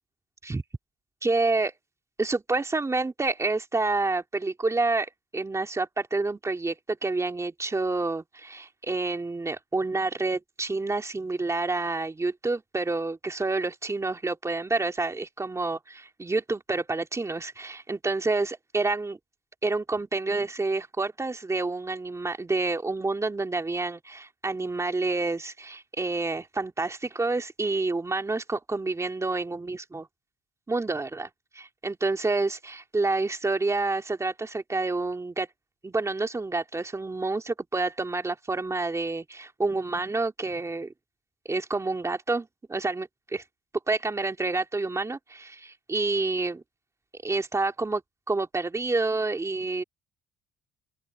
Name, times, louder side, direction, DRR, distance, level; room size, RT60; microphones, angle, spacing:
voice 1, 1.2-1.7 2.2-15.8 16.2-19.2 19.6-30.1 30.7-35.5 35.8-40.9 41.5-43.4 43.9-46.6 47.2-48.0 48.3-49.8, right 3 dB, 15° right, 3.2 m, -28 dB
open air
cardioid pair, 110°, 17 cm